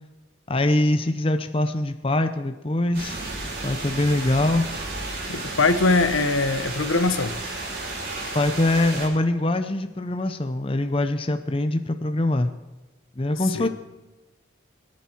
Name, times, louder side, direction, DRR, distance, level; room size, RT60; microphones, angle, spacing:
voice 1, 0.5-3.2 3.6-4.7 8.3-12.5 13.2-13.7, left 1 dB, 25° left, 8 dB, 0.6 m, -23 dB
sound 1, 2.9-9.1, right 2 dB, 50° right, 3.9 m, -33 dB
voice 2, 5.3-7.4 13.5-13.7, left 3 dB, 85° left, 10 dB, 1.1 m, -22 dB
22.5 x 10.5 x 4.5 m, 1.2 s
head